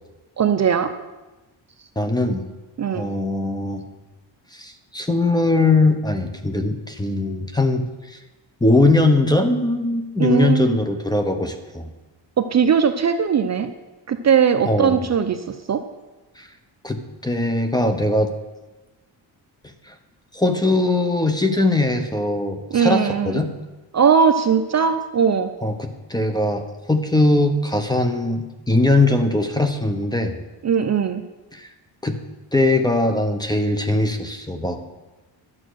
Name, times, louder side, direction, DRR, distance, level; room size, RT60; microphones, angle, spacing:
voice 1, 0.4-0.9 2.8-3.1 10.2-10.8 12.4-13.7 14.1-15.8 22.7-23.4 23.9-25.5 30.6-31.2, right 7 dB, 40° right, 8 dB, 0.6 m, -19 dB
voice 2, 2.0-2.5 2.9-3.8 4.5-8.2 8.6-11.9 14.6-15.0 16.4-16.5 16.8-18.3 19.9-20.0 20.3-23.5 25.6-30.4 31.5-31.7 32.0-32.2 32.5-34.9, left 2 dB, 10° left, 7 dB, 0.9 m, -20 dB
11.5 x 7.5 x 6.3 m, 1.1 s
cardioid pair, 125°, 43 cm